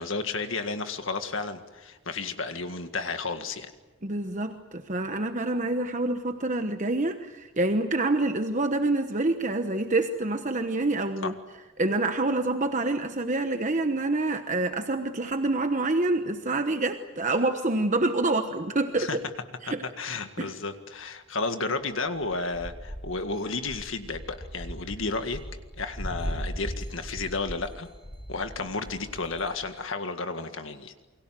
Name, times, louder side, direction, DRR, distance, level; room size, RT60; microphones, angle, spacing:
voice 1, 0.0-3.7 11.2-11.3 19.0-19.2 20.0-25.4 25.8-27.9 28.3-30.9, left 3 dB, 65° left, 8 dB, 1.9 m, -32 dB
voice 2, 4.0-11.3 11.8-19.2 19.6-19.8 20.4-20.5, right 2 dB, 35° right, 7 dB, 1.1 m, -27 dB
sound 1, 22.2-29.7, equal, 20° left, 6.9 m, -38 dB
29.0 x 23.0 x 7.6 m, 1.2 s
head